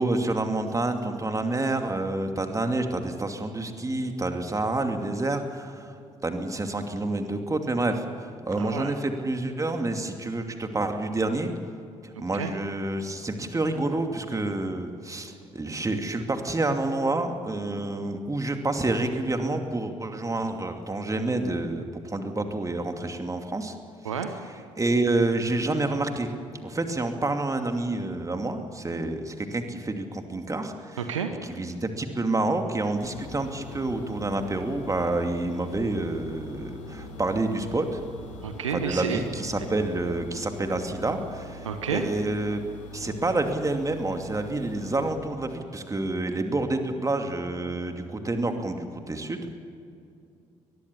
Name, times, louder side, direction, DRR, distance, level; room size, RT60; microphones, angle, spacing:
voice 1, 0.0-6.0 6.2-11.5 12.0-23.7 24.8-26.3 26.6-31.0 31.4-38.0 38.7-42.6 42.9-49.5, right 2 dB, 20° right, 5 dB, 2.6 m, -28 dB
voice 2, 8.5-8.9 12.1-12.5 24.0-24.3 31.0-31.4 38.4-39.2 41.6-42.1, right 6 dB, 80° right, 7 dB, 1.1 m, -30 dB
sound 1, 33.0-45.1, left 1 dB, 75° left, 3.2 m, -43 dB
23.5 x 20.5 x 7.0 m, 2.5 s
figure-of-eight pair, 45°, 16 cm